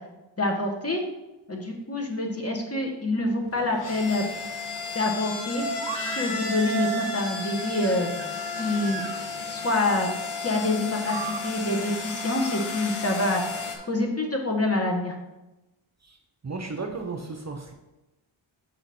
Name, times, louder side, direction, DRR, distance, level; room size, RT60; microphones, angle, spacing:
voice 1, 0.4-1.0 1.5-4.2 4.9-5.6 6.1-8.1 8.6-9.0 9.5-10.1 10.4-11.2 11.4-15.1, left 2 dB, 30° left, 1 dB, 1.4 m, -26 dB
sound 1, 3.4-13.8, left 3 dB, 85° left, 1.1 m, -33 dB
sound 2, 5.8-9.2 10.8-11.4, right 7 dB, 60° right, 0.7 m, -37 dB
voice 2, 16.4-17.7, right 3 dB, 35° right, 3 dB, 0.8 m, -34 dB
6.1 x 4.9 x 4.3 m, 1.0 s
cardioid pair, 55°, 49 cm